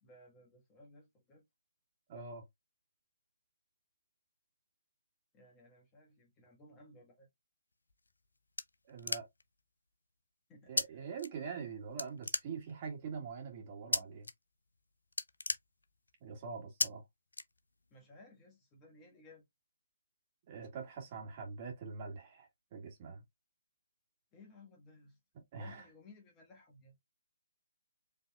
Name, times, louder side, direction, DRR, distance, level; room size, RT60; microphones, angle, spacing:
voice 1, 0.0-1.4 5.3-7.3 10.5-11.0 17.9-19.5 24.3-25.2 25.6-26.9, left 2 dB, 20° left, 1.4 m, -59 dB
voice 2, 2.1-2.4 8.9-9.2 10.7-14.3 16.2-17.0 20.5-23.2 25.5-25.8, right 5 dB, 30° right, 1.8 m, -44 dB
sound 1, 7.9-9.6 10.8-10.9 11.2-11.7 12.0-12.9 13.9-14.3 14.7-14.8 15.1-16.2 16.8-16.9 17.3-18.0, left 3 dB, 75° left, 0.5 m, -36 dB
5.0 x 3.4 x 2.3 m
figure-of-eight pair, 140°, 0 cm